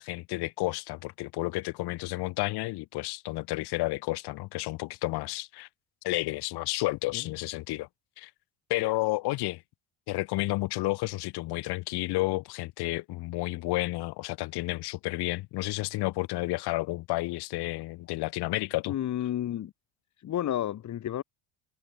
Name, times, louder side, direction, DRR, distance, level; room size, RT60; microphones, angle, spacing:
voice 1, 0.0-5.7 6.0-7.9 8.2-8.3 8.7-9.6 10.1-18.9, left 20 dB, 70° left, 4.4 m, -31 dB
voice 2, 18.9-19.7 20.2-21.2, left 11 dB, 45° left, 2.5 m, -31 dB
cardioid pair, 130°, 40 cm